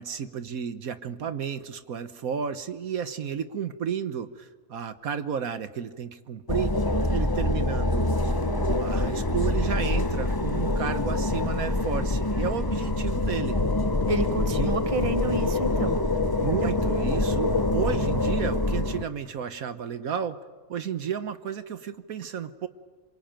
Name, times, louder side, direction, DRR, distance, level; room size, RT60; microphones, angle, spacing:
voice 1, 0.0-6.7 7.1-13.6 14.6-14.7 16.4-20.4 20.7-22.7, right 7 dB, 70° right, 11 dB, 1.5 m, -32 dB
sound 1, 6.5-19.0, left 2 dB, 20° left, 0.8 m, -25 dB
voice 2, 14.1-16.0 16.6-16.7, right 2 dB, 25° right, 9 dB, 1.3 m, -29 dB
27.0 x 23.5 x 9.1 m, 1.4 s
omnidirectional pair, 1.5 m